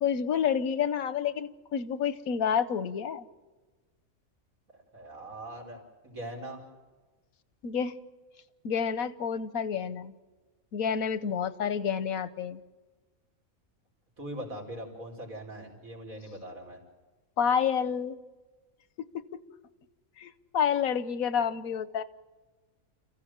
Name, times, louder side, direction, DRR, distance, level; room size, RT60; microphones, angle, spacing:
voice 1, 0.0-3.3 7.6-8.0 8.6-10.1 10.7-12.6 17.4-18.2 19.0-19.2 20.2-22.0, left 7 dB, 90° left, 14 dB, 1.4 m, -29 dB
voice 2, 4.9-6.6 14.2-16.8, right 1 dB, 80° right, -1 dB, 5.2 m, -41 dB
30.0 x 15.0 x 7.4 m, 1.3 s
omnidirectional pair, 1.4 m